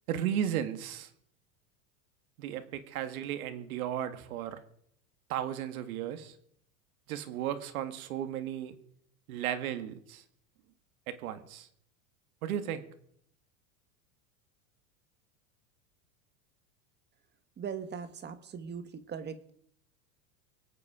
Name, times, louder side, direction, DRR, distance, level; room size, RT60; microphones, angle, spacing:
voice 1, 0.1-1.1 2.4-4.6 5.3-6.4 7.1-8.8 9.3-10.2 11.1-11.7 12.4-12.9, right 10 dB, 85° right, 10 dB, 1.9 m, -35 dB
voice 2, 17.6-19.5, right 7 dB, 25° right, 10 dB, 1.5 m, -40 dB
25.0 x 8.7 x 4.9 m, 0.67 s
supercardioid pair, 135°, 42 cm